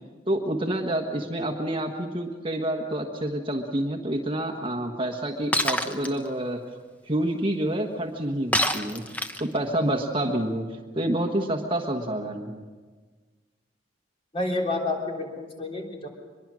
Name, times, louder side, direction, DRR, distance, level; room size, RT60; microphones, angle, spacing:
voice 1, 0.3-6.6 7.0-10.7 10.9-12.6, right 1 dB, 25° right, 3 dB, 1.4 m, -28 dB
Shatter, 5.5-6.1 8.5-9.6, left 1 dB, 10° left, 0.9 m, -25 dB
voice 2, 14.3-16.1, left 2 dB, 30° left, 0 dB, 3.6 m, -29 dB
23.5 x 22.5 x 6.3 m, 1.5 s
head